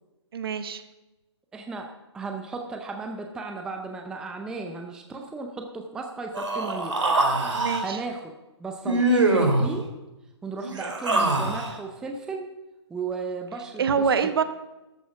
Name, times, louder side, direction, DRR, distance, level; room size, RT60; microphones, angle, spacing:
voice 1, 0.3-0.8 7.5-8.0 13.8-14.4, right 6 dB, 55° right, 10 dB, 1.0 m, -25 dB
voice 2, 1.5-7.0 7.8-8.3 8.6-9.9 10.4-12.5 12.9-14.4, right 4 dB, 5° right, 3 dB, 0.5 m, -35 dB
Human voice, 6.3-7.9 8.9-9.7 10.6-11.8, right 2 dB, 80° right, 2.5 m, -23 dB
13.5 x 7.0 x 5.9 m, 1.0 s
hypercardioid pair, 150°, 15 cm